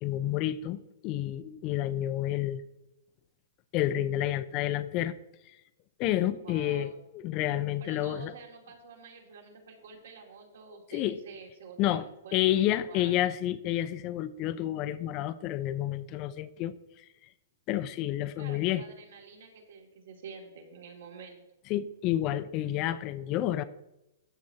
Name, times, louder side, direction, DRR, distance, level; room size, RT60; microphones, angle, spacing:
voice 1, 0.0-2.6 3.7-5.1 5.5-5.6 6.0-8.3 10.9-11.2 11.8-12.0 12.3-16.7 17.7-18.8 21.7-23.6, left 13 dB, 35° left, 15 dB, 0.6 m, -29 dB
voice 2, 6.3-7.0 7.8-13.4 18.4-21.4, right 5 dB, 75° right, 0 dB, 2.6 m, -49 dB
13.5 x 6.3 x 2.9 m, 0.90 s
hypercardioid pair, 135°, 0 cm